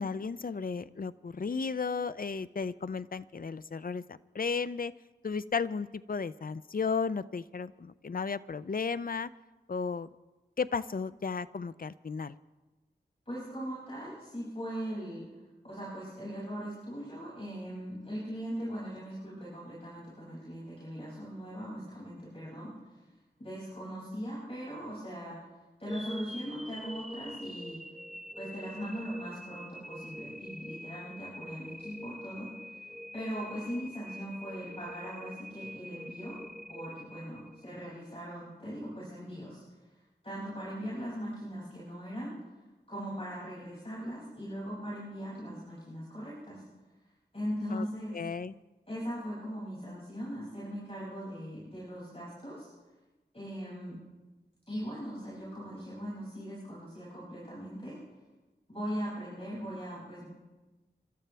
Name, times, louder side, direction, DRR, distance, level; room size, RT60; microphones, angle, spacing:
voice 1, 0.0-4.9 5.2-9.3 9.7-10.1 10.6-12.4 47.7-47.8 48.1-48.5, left 5 dB, 55° left, 16 dB, 0.5 m, -34 dB
voice 2, 13.2-15.3 15.6-23.0 23.4-25.4 25.8-27.8 28.3-32.9 33.1-36.4 36.7-39.6 40.2-42.3 42.9-46.6 47.3-48.2 48.9-52.7 53.3-54.0 54.7-58.0 58.7-60.3, equal, 35° left, -8 dB, 6.6 m, -40 dB
sound 1, 25.9-38.0, equal, ahead, 0.5 m, -45 dB
27.5 x 13.0 x 3.4 m, 1.2 s
wide cardioid pair, 55°, 18 cm